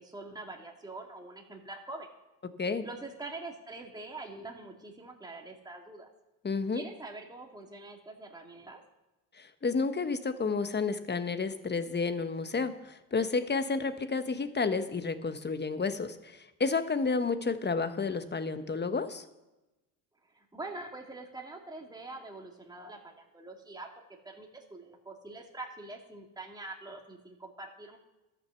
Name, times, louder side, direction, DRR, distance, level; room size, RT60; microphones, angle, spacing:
voice 1, 0.0-2.1 2.8-6.1 6.7-8.8 20.2-23.9 24.2-28.0, right 2 dB, 10° right, 1 dB, 2.2 m, -44 dB
voice 2, 6.4-6.8 9.4-19.2, left 4 dB, 25° left, 10 dB, 1.2 m, -31 dB
13.0 x 6.3 x 7.0 m, 1.0 s
supercardioid pair, 75°, 45 cm